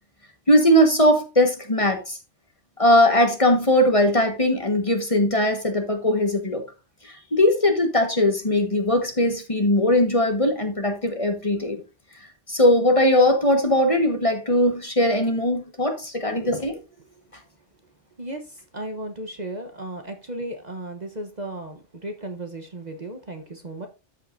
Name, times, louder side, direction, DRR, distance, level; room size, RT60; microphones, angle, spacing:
voice 1, 0.5-2.2 2.8-6.6 7.0-11.8 12.5-16.8, left 1 dB, 30° left, 1.5 m, -20 dB
voice 2, 18.2-23.9, right 1 dB, 40° right, 1.1 m, -35 dB
13.0 x 5.6 x 2.6 m
omnidirectional pair, 1.2 m